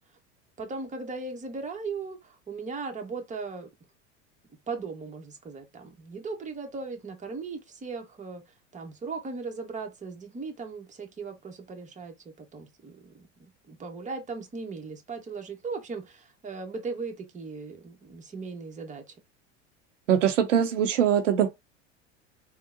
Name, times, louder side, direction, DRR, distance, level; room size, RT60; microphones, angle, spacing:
voice 1, 0.6-3.7 4.7-8.4 8.7-19.2, right 4 dB, 20° right, 1.0 m, -38 dB
voice 2, 20.1-21.5, right 9 dB, 80° right, 0.7 m, -22 dB
3.7 x 2.2 x 2.5 m
hypercardioid pair, 85°, 37 cm